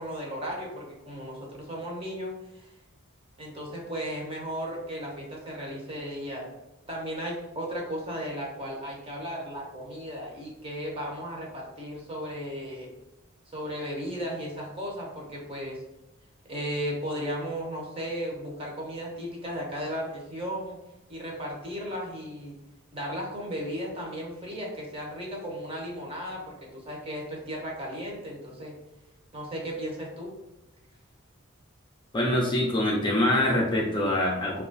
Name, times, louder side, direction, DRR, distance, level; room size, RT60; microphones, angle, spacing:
voice 1, 0.0-2.7 3.4-6.5 6.9-12.9 13.5-15.8 16.5-20.8 21.1-22.6 22.9-28.8 29.3-30.3, equal, 25° right, -2 dB, 0.8 m, -35 dB
voice 2, 32.1-34.6, left 1 dB, 20° left, -2 dB, 0.4 m, -24 dB
2.9 x 2.4 x 3.9 m, 0.94 s
head